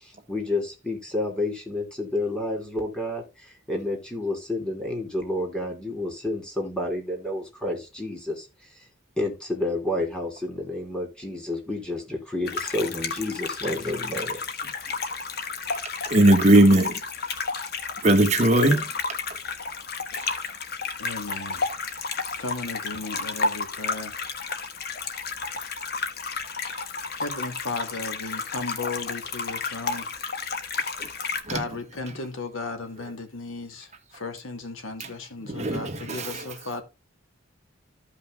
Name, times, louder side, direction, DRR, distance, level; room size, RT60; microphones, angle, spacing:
voice 1, 0.0-8.9 9.2-14.4, left 1 dB, 5° left, 3.1 m, -30 dB
sound 1, 12.5-31.4, left 4 dB, 50° left, 1.2 m, -32 dB
voice 2, 16.0-17.0 18.0-18.9 20.2-20.3 26.6-26.8 31.0-31.1 31.5-31.6 35.0-35.1 35.4-36.5, right 1 dB, 30° right, 1.2 m, -19 dB
voice 3, 21.0-21.7 22.4-24.1 27.2-30.1 31.5-36.8, left 3 dB, 75° left, 2.2 m, -35 dB
15.0 x 5.6 x 2.2 m
head